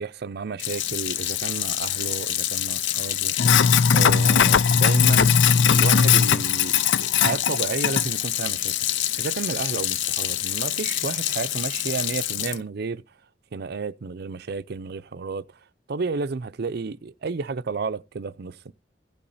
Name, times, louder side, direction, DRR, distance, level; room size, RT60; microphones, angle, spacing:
voice 1, 0.0-3.4 3.9-5.4 5.6-8.9 9.2-13.0 13.5-15.5 15.9-18.7, right 4 dB, 60° right, 0.5 m, -31 dB
Sink (filling or washing), 0.6-12.5, left 7 dB, 75° left, 0.5 m, -22 dB
15.5 x 8.6 x 2.7 m
head